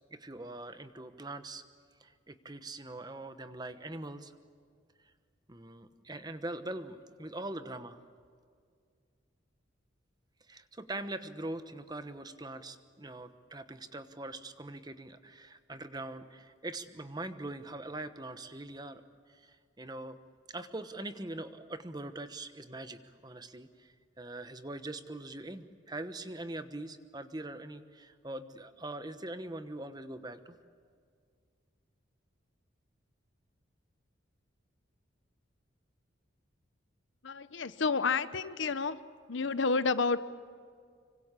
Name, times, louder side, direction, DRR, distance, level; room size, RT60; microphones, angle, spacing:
voice 1, 0.1-1.6 2.0-4.3 5.5-8.0 10.5-19.0 19.3-20.2 20.5-30.5, right 2 dB, 20° right, 10 dB, 1.1 m, -42 dB
voice 2, 37.2-39.0 39.3-40.2, left 4 dB, 70° left, 14 dB, 0.9 m, -30 dB
26.0 x 24.5 x 8.3 m, 2.1 s
head